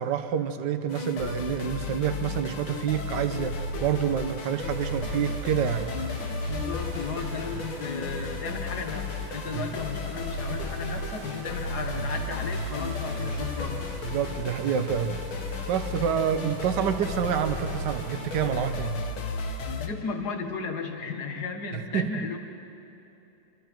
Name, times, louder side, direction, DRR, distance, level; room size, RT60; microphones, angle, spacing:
voice 1, 0.0-5.9 9.5-9.7 14.0-15.2 15.7-19.0 21.7-22.3, right 8 dB, 60° right, 9 dB, 1.5 m, -28 dB
sound 1, 0.9-19.9, left 3 dB, 75° left, 2.2 m, -34 dB
sound 2, 4.7-18.5, right 10 dB, 85° right, 1.6 m, -44 dB
voice 2, 6.4-13.9 19.8-22.4, left 5 dB, 50° left, 5 dB, 2.0 m, -35 dB
26.0 x 25.5 x 4.6 m, 3.0 s
omnidirectional pair, 2.4 m